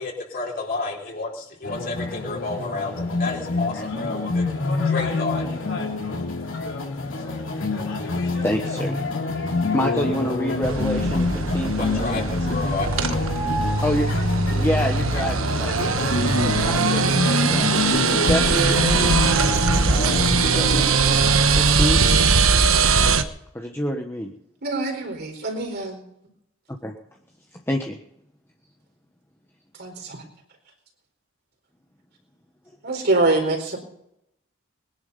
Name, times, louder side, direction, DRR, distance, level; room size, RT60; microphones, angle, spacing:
voice 1, 0.0-4.5 4.8-5.4 11.8-13.3, left 3 dB, 45° left, 0 dB, 4.3 m, -31 dB
sound 1, 1.6-20.8, left 3 dB, 65° left, 3.2 m, -26 dB
voice 2, 8.4-9.0 9.7-12.3 13.8-14.1 14.6-19.3 19.9-22.1 23.5-24.3 26.8-26.9 27.7-28.0, equal, 10° left, 2 dB, 1.3 m, -28 dB
sound 2, 10.6-23.2, right 4 dB, 80° right, 1.2 m, -21 dB
voice 3, 24.6-26.0 29.8-30.2 32.8-33.8, right 2 dB, 50° right, 3 dB, 4.3 m, -24 dB
21.5 x 10.5 x 5.5 m, 0.77 s
head